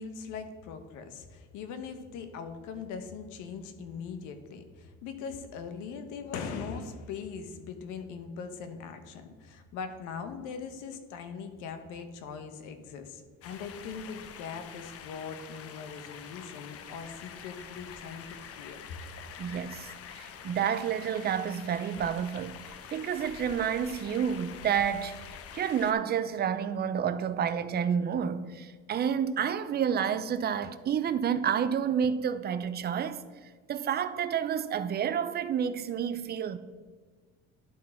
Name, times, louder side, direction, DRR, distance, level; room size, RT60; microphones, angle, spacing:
voice 1, 0.0-19.0, left 6 dB, 85° left, 1.0 m, -41 dB
sound 1, 13.4-25.9, left 7 dB, 50° left, 0.7 m, -46 dB
voice 2, 19.4-22.5 22.9-25.2 25.5-33.2 33.7-36.6, right 8 dB, 35° right, 0.5 m, -29 dB
11.5 x 3.9 x 4.3 m
cardioid pair, 110°, 30 cm